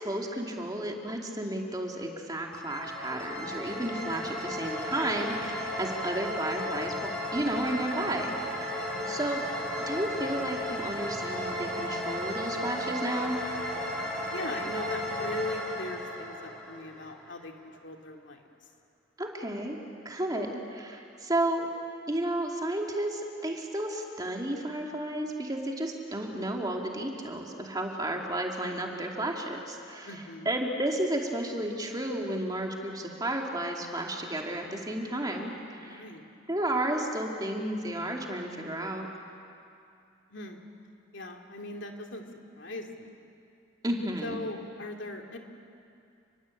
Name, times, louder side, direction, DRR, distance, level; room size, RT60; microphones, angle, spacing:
voice 1, 0.0-6.9 7.3-8.4 8.7-9.5 9.9-13.4 19.2-19.8 20.0-21.7 22.1-36.0 36.5-39.1 43.8-44.4, right 1 dB, 20° right, 1 dB, 2.7 m, -32 dB
sound 1, 2.5-17.3, equal, 5° left, 6.0 m, -34 dB
voice 2, 8.9-9.3 14.3-17.5 17.8-18.4 30.0-30.5 35.9-36.2 40.3-40.6 41.1-42.2 42.6-43.1 44.2-45.4, left 2 dB, 65° left, 3 dB, 2.5 m, -40 dB
29.5 x 21.5 x 8.6 m, 2.5 s
head